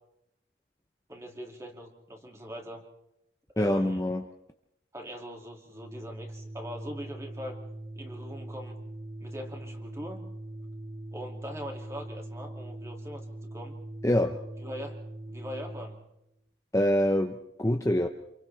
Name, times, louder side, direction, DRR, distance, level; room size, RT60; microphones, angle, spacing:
voice 1, 1.1-2.8 3.6-4.0 4.9-7.6 8.0-8.8 9.2-10.2 11.1-13.7 14.6-15.0 15.3-16.0, equal, 15° right, 2 dB, 2.5 m, -41 dB
voice 2, 3.6-4.2 14.0-14.4 16.7-18.1, left 1 dB, 15° left, 3 dB, 0.8 m, -25 dB
Organ, 5.7-16.0, right 1 dB, 85° right, 7.2 m, -41 dB
28.5 x 27.5 x 3.4 m, 0.84 s
head